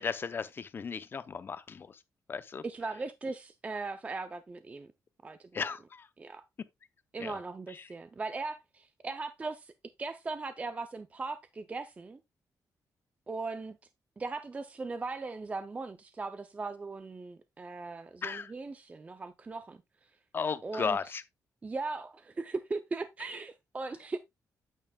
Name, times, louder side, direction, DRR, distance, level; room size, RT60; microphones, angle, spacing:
voice 1, 0.0-2.0 2.3-2.6 5.5-6.1 7.2-7.4 18.2-18.5 20.3-21.2, left 5 dB, 35° left, 0.7 m, -35 dB
voice 2, 2.6-4.9 5.2-5.7 6.2-6.4 7.1-9.7 10.0-12.2 13.3-13.8 14.2-20.1 20.6-21.2 21.6-24.2, right 3 dB, 20° right, 0.5 m, -39 dB
9.0 x 8.8 x 2.3 m
wide cardioid pair, 170°, 6 cm